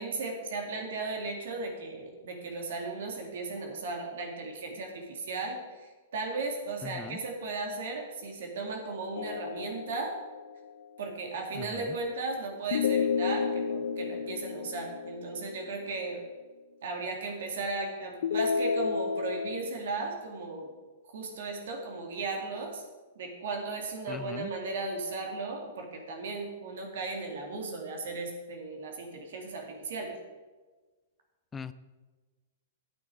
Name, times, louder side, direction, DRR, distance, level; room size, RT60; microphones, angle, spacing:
voice 1, 0.0-10.1 11.0-16.2 16.8-20.7 21.1-22.8 23.2-30.1, right 3 dB, 70° right, 2 dB, 2.2 m, -36 dB
voice 2, 6.8-7.2 11.6-12.0 24.1-24.5 31.5-31.7, left 6 dB, 10° left, 14 dB, 0.4 m, -40 dB
sound 1, 9.1-10.7 12.7-15.9 18.2-19.6, left 6 dB, 75° left, 0.5 m, -31 dB
9.6 x 8.6 x 4.8 m, 1.3 s
hypercardioid pair, 155°, 0 cm